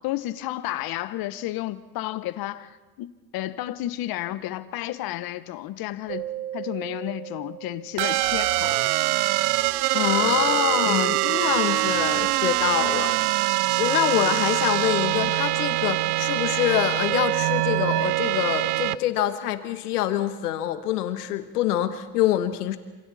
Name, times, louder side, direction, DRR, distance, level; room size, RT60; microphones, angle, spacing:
voice 1, 0.0-6.2 6.5-8.8 10.8-11.2, left 15 dB, 50° left, 14 dB, 1.1 m, -31 dB
Keyboard (musical), 6.1-8.8, right 13 dB, 55° right, 1.4 m, -37 dB
sound 1, 8.0-19.0, right 17 dB, 80° right, 0.8 m, -23 dB
voice 2, 9.7-13.4 13.8-22.8, left 12 dB, 90° left, 11 dB, 1.4 m, -25 dB
27.5 x 27.0 x 4.2 m, 1.2 s
supercardioid pair, 100°, 45 cm